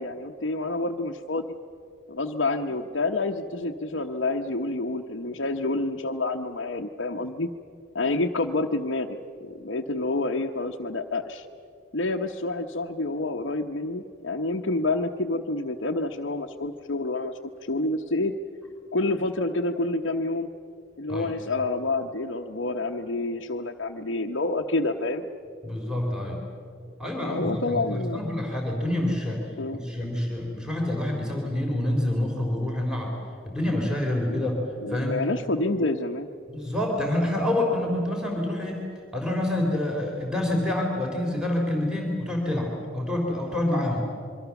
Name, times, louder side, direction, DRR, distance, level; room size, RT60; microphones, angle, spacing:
voice 1, 0.0-1.4 2.1-7.5 7.9-11.5 11.9-17.3 17.6-18.3 18.9-20.5 21.0-25.3 27.2-28.2 29.6-29.8 34.3-34.5 34.8-36.3, left 2 dB, 65° left, 0 dB, 0.9 m, -28 dB
voice 2, 25.6-26.4 27.0-33.2 33.5-34.6 34.9-35.2 36.5-38.9 39.1-44.1, left 1 dB, 5° right, 0 dB, 3.5 m, -27 dB
27.0 x 23.5 x 7.1 m, 2.4 s
head